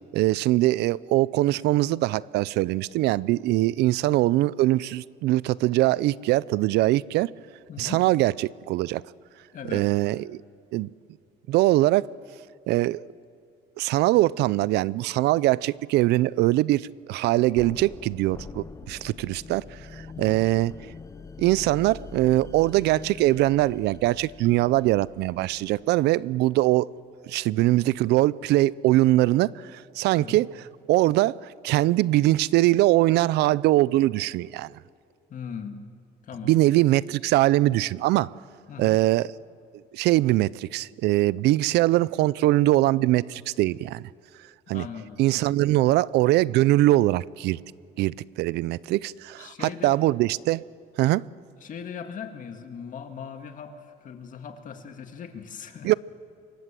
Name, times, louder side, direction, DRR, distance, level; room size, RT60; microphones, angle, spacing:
voice 1, 0.1-7.3 7.8-9.0 9.7-10.4 10.7-10.9 11.5-12.1 12.7-13.1 13.8-20.7 21.4-26.9 27.3-30.5 30.9-31.4 31.6-34.7 36.4-38.3 38.8-39.3 39.9-44.0 44.7-44.8 45.2-47.6 48.0-50.6 51.0-51.2 55.8-55.9, right 17 dB, 80° right, 0.5 m, -22 dB
voice 2, 7.7-8.0 9.5-9.9 20.2-20.4 30.1-30.4 35.3-35.8 36.2-36.6 38.7-39.0 44.7-45.2 49.4-50.0 51.6-53.7 54.0-55.9, left 7 dB, 50° left, 2.2 m, -39 dB
sound 1, 17.6-26.4, left 5 dB, 20° left, 0.7 m, -44 dB
26.0 x 23.5 x 7.6 m
cardioid pair, 110°, 17 cm